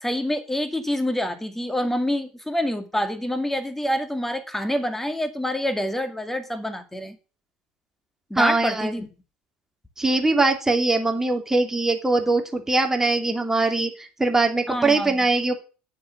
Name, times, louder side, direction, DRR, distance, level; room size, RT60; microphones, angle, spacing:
voice 1, 0.0-7.2 8.3-9.1 14.7-15.2, left 1 dB, 5° left, 8 dB, 2.3 m, -27 dB
voice 2, 8.3-9.1 10.0-15.6, right 3 dB, 10° right, 4 dB, 2.7 m, -22 dB
8.8 x 7.7 x 7.3 m, 0.35 s
hypercardioid pair, 70°, 5 cm